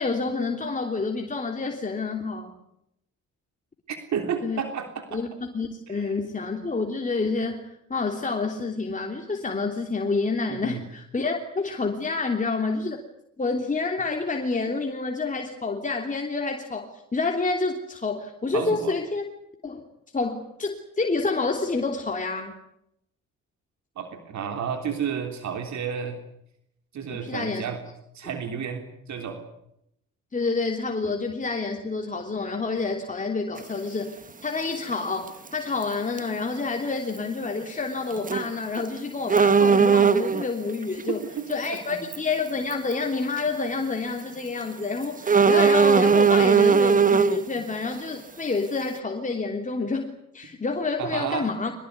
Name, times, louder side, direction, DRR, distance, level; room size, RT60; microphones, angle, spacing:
voice 1, 0.0-2.5 4.4-4.6 5.1-5.3 5.5-13.0 13.4-19.2 19.6-19.8 20.1-22.5 27.1-27.6 30.3-41.2 41.5-50.1 50.3-51.7, left 3 dB, 25° left, 2 dB, 3.3 m, -28 dB
voice 2, 3.9-5.2 5.9-6.1 10.5-10.8 18.5-18.9 24.0-26.2 26.9-27.8 28.1-29.4 41.7-42.0 51.0-51.5, right 7 dB, 65° right, 6 dB, 3.4 m, -31 dB
sound 1, 33.6-33.7 35.3-35.5 35.8-35.9 36.2-36.3 38.2-38.5 38.8-38.9 39.3-40.5 41.5-41.7 42.1-42.2 42.7-42.9 43.4-43.5 45.3-47.4, right 6 dB, 25° right, 1.1 m, -18 dB
24.0 x 20.0 x 9.7 m, 0.78 s
cardioid pair, 90°, 30 cm